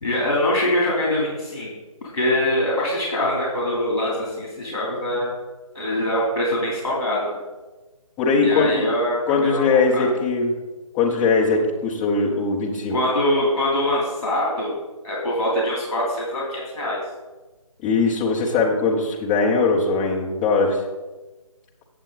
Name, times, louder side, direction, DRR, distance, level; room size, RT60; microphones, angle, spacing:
voice 1, 0.0-1.7 2.0-5.4 5.7-7.4 8.4-10.1 12.9-14.7 15.0-17.0, left 1 dB, 50° left, -5 dB, 3.0 m, -23 dB
voice 2, 8.2-8.7 9.3-10.5 10.9-13.0 17.8-20.8, left 4 dB, 5° left, -4 dB, 0.6 m, -20 dB
8.7 x 7.2 x 3.9 m, 1.2 s
figure-of-eight pair, 160°, 18 cm